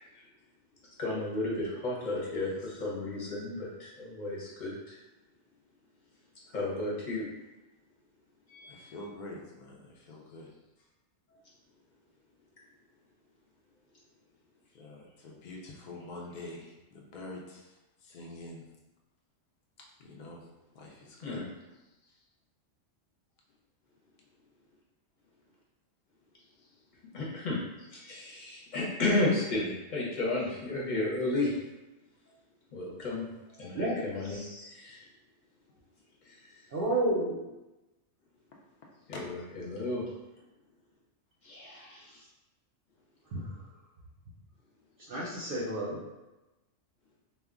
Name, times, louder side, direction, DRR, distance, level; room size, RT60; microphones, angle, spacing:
voice 1, 1.0-5.0 6.5-7.3 8.5-8.9 21.2-21.4 27.1-27.6 27.9-31.5 32.7-33.3 33.6-35.0 39.1-39.4 39.7-40.0 41.4-42.0, left 2 dB, 45° left, -5 dB, 0.7 m, -33 dB
voice 2, 2.0-2.9 8.7-10.9 14.7-18.7 20.0-20.5 20.7-21.4 21.8-22.2 26.4-26.8 36.4-36.6 38.8-39.2, left 2 dB, 90° left, -2 dB, 0.4 m, -47 dB
voice 3, 33.7-34.5 36.7-37.4 43.3-43.5 45.0-46.0, right 1 dB, 60° right, -5 dB, 0.6 m, -31 dB
2.2 x 2.1 x 3.5 m, 1.0 s
omnidirectional pair, 1.3 m